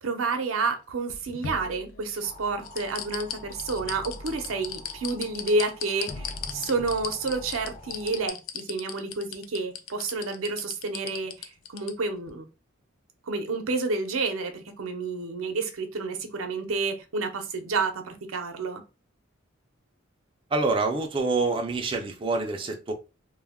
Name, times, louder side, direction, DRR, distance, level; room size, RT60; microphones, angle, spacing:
voice 1, 0.0-12.4 13.3-18.8, right 3 dB, 85° right, 0.6 m, -30 dB
sound 1, 0.9-2.2 2.6-11.9 12.3-12.4, left 9 dB, 80° left, 0.4 m, -36 dB
sound 2, 2.2-8.3, left 1 dB, 25° left, 0.5 m, -44 dB
voice 2, 20.5-22.9, right 3 dB, 25° right, 0.4 m, -26 dB
2.2 x 2.1 x 3.4 m
head